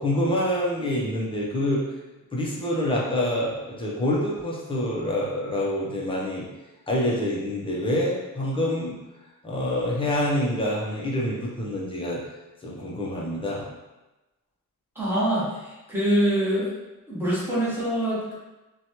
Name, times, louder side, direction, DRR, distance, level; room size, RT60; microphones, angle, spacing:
voice 1, 0.0-1.8 2.3-6.5 6.9-8.9 9.4-12.2 12.6-13.7, left 1 dB, 15° left, -4 dB, 0.5 m, -26 dB
voice 2, 14.9-16.7 17.1-18.3, right 1 dB, 5° right, -10 dB, 0.9 m, -24 dB
2.8 x 2.2 x 2.8 m, 1.1 s
wide cardioid pair, 170°, 32 cm